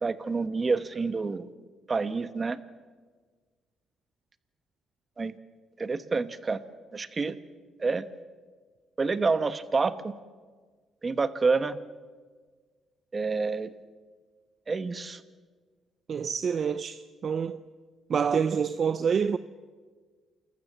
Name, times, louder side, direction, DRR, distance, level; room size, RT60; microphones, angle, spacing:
voice 1, 0.0-1.5 1.9-2.6 5.2-5.3 5.8-6.6 6.9-7.4 7.8-8.1 9.0-10.1 11.0-11.8 13.1-13.7 14.7-15.2, right 4 dB, 30° right, 1.1 m, -28 dB
voice 2, 16.1-17.6 18.1-19.4, right 6 dB, 50° right, 0.6 m, -27 dB
28.5 x 14.0 x 7.3 m
cardioid pair, 90°, 0 cm